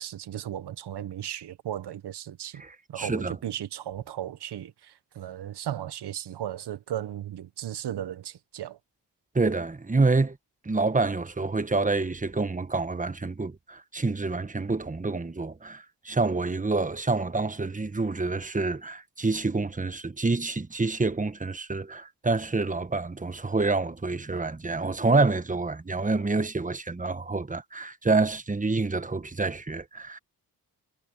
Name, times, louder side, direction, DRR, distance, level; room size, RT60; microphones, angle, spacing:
voice 1, 0.0-2.6 2.9-8.8, right 11 dB, 75° right, 1.4 m, -36 dB
voice 2, 2.6-3.3 9.3-10.4 10.6-30.2, right 3 dB, 20° right, 1.4 m, -27 dB
supercardioid pair, 55°, 41 cm